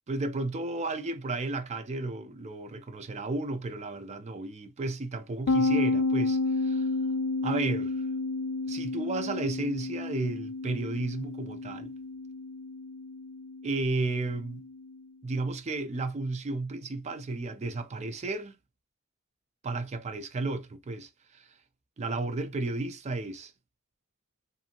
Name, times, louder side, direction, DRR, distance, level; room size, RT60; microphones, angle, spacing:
voice 1, 0.1-6.9 7.4-8.0 8.7-11.9 13.6-14.6 15.2-18.6 19.6-21.5 22.0-23.5, right 2 dB, 30° right, 0.4 m, -33 dB
sound 1, 5.5-14.9, left 3 dB, 80° left, 0.4 m, -31 dB
2.8 x 2.6 x 2.5 m
head